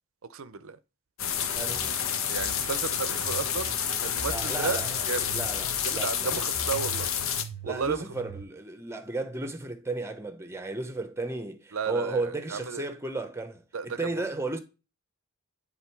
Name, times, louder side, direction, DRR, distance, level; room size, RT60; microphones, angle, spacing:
voice 1, 0.3-0.8 2.3-3.7 4.0-5.4 5.8-7.1 7.6-8.0 11.7-12.9 13.7-14.2, right 5 dB, 65° right, 0.6 m, -33 dB
sound 1, 1.2-7.4, left 8 dB, 65° left, 1.0 m, -29 dB
voice 2, 1.5-1.9 4.3-5.0 5.3-6.3 7.6-14.6, right 2 dB, 10° right, 0.9 m, -34 dB
sound 2, 1.6-8.4, right 4 dB, 45° left, 2.0 m, -43 dB
9.5 x 3.8 x 4.6 m
head